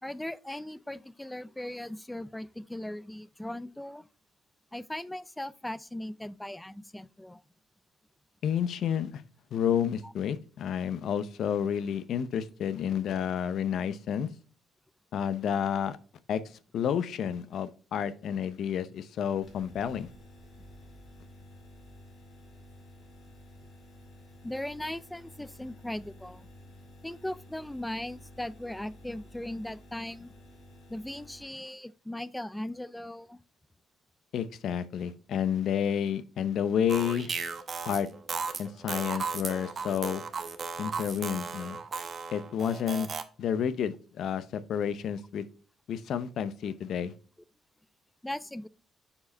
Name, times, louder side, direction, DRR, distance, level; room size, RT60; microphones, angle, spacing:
voice 1, 0.0-4.1 4.7-7.4 10.0-10.1 24.4-26.5 27.0-30.3 30.9-33.4 48.2-48.7, left 1 dB, 5° left, 0.3 m, -38 dB
voice 2, 8.4-9.2 9.5-14.3 15.1-16.0 16.3-16.4 16.7-20.1 34.3-37.3 37.9-38.1 38.6-40.2 40.8-41.8 42.3-43.1 43.4-45.5 45.9-47.1, left 8 dB, 65° left, 0.6 m, -30 dB
sound 1, 19.4-31.4, left 1 dB, 50° left, 2.5 m, -52 dB
sound 2, 36.9-43.2, right 5 dB, 40° right, 0.8 m, -36 dB
6.8 x 4.8 x 3.3 m
cardioid pair, 115°, 0 cm